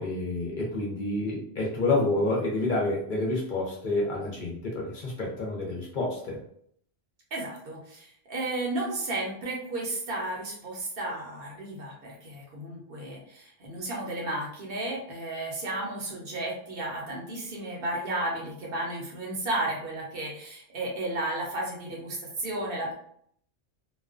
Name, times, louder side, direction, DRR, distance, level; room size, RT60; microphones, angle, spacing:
voice 1, 0.0-6.4, left 2 dB, 55° left, -2 dB, 0.7 m, -28 dB
voice 2, 7.3-22.9, right 2 dB, 60° right, -2 dB, 0.9 m, -33 dB
2.3 x 2.2 x 2.4 m, 0.65 s
omnidirectional pair, 1.1 m